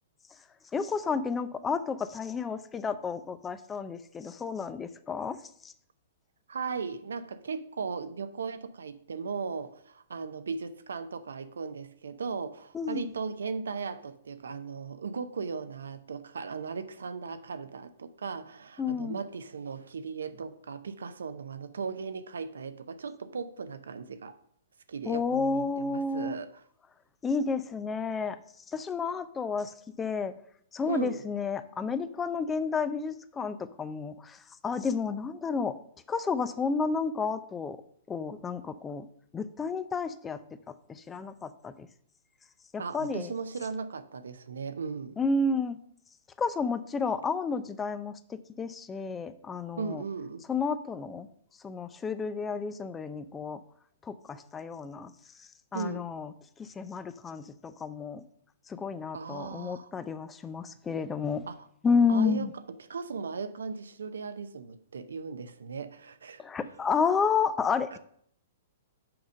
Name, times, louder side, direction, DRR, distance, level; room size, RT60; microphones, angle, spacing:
voice 1, 0.7-5.4 12.7-13.1 18.8-19.2 25.1-26.3 27.2-28.4 28.7-30.3 30.7-34.4 34.6-35.8 36.1-37.8 38.1-39.1 39.3-40.4 40.7-41.9 42.7-43.3 45.2-45.8 46.4-50.0 50.5-51.3 51.6-53.6 54.1-55.1 55.7-56.3 56.6-58.2 58.7-61.4 61.8-62.5 66.4-68.0, left 5 dB, 15° left, 0.5 m, -31 dB
voice 2, 6.5-24.4 24.9-26.6 30.9-31.2 42.8-45.2 49.8-50.4 55.7-56.1 59.1-59.9 61.5-61.7 62.1-66.4 67.9-68.0, right 5 dB, 85° right, 0.6 m, -37 dB
5.9 x 5.0 x 6.4 m
hypercardioid pair, 125°, 0 cm